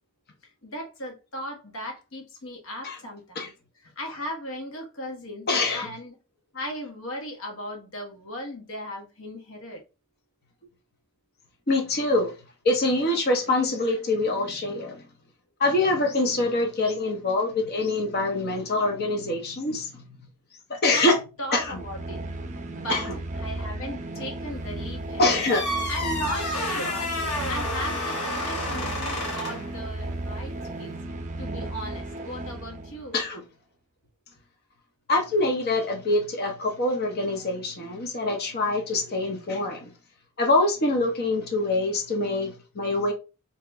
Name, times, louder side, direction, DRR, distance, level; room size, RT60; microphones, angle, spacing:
voice 1, 0.4-3.5 4.0-6.2 6.5-9.8 20.9-22.2 22.7-23.0 23.4-25.2 25.9-27.1 27.5-30.5 30.8-30.9 31.4-33.2, equal, 65° left, 1.2 m, -37 dB
voice 2, 5.5-5.9 11.7-12.3 12.6-15.0 15.6-20.1 20.7-21.2 21.5-21.8 22.9-23.2 25.2-25.7 33.1-33.4 35.1-39.9 40.4-43.1, left 2 dB, 45° left, 0.8 m, -25 dB
sound 1, 21.5-33.2, right 2 dB, 35° right, 0.5 m, -35 dB
sound 2, 25.3-29.7, left 1 dB, 80° left, 1.6 m, -30 dB
2.9 x 2.9 x 3.3 m
head